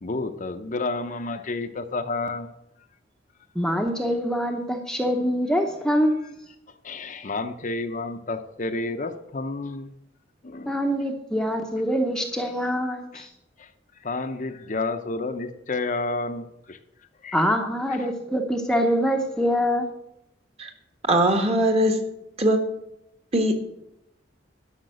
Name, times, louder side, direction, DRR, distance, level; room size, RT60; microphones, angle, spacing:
voice 1, 0.0-2.5 6.8-9.9 10.4-10.8 13.1-13.3 13.6-13.7 14.0-16.8 17.2-17.4 18.0-18.1, left 3 dB, 40° left, 7 dB, 0.7 m, -30 dB
voice 2, 3.5-6.2 10.7-13.3 17.3-19.9, equal, 5° left, 3 dB, 0.8 m, -24 dB
voice 3, 21.1-22.0 22.4-22.7 23.3-23.5, right 1 dB, 30° right, 5 dB, 1.5 m, -20 dB
12.0 x 5.9 x 7.6 m, 0.83 s
head